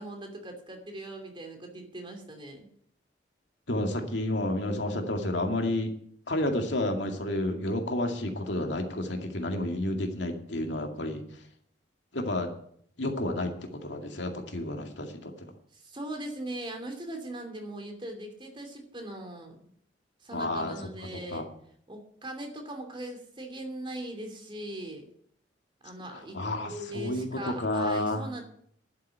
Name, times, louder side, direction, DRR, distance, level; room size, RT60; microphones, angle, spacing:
voice 1, 0.0-2.7 15.7-19.6 20.2-21.4 21.9-25.1 25.8-28.4, right 1 dB, 25° right, 4 dB, 2.9 m, -40 dB
voice 2, 3.7-5.9 6.3-11.2 12.1-12.5 13.0-15.5 20.3-20.7 21.1-21.4 26.1-28.2, left 1 dB, 80° left, 3 dB, 2.2 m, -30 dB
11.5 x 7.6 x 9.1 m, 0.65 s
head